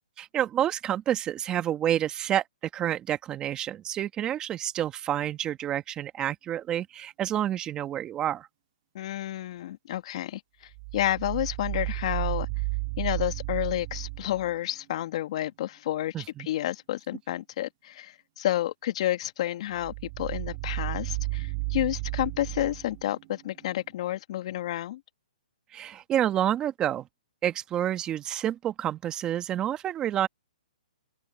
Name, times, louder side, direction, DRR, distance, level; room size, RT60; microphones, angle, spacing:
voice 1, 0.2-2.4 2.7-8.5 16.1-16.5 25.7-27.1 27.4-30.3, right 11 dB, 20° right, 1.6 m, -29 dB
voice 2, 8.9-10.4 10.9-12.5 13.0-16.1 16.4-25.0, left 13 dB, 50° left, 2.0 m, -30 dB
sound 1, 10.7-14.5 19.8-23.9, right 28 dB, 35° right, 2.2 m, -33 dB
open air
hypercardioid pair, 145°, 4 cm